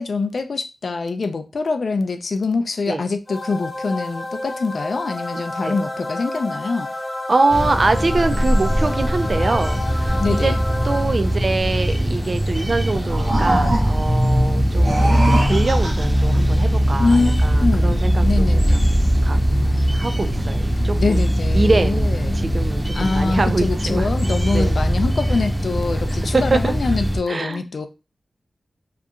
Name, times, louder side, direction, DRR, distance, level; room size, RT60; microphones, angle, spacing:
voice 1, 0.0-6.9 10.2-10.6 17.0-19.0 21.0-22.4 22.9-27.9, left 4 dB, 75° left, 0.3 m, -24 dB
sound 1, 3.3-11.5, left 1 dB, 30° left, 0.7 m, -30 dB
voice 2, 5.3-5.8 7.3-10.6 10.8-18.8 19.2-19.4 19.9-24.1 24.5-24.7 26.3-26.7 27.3-27.6, right 3 dB, 55° right, 0.3 m, -24 dB
sound 2, 7.5-27.2, equal, 15° right, 0.6 m, -20 dB
sound 3, 12.8-14.1 14.7-16.3, right 1 dB, 80° right, 1.0 m, -24 dB
2.8 x 2.3 x 2.4 m
cardioid pair, 55°, 0 cm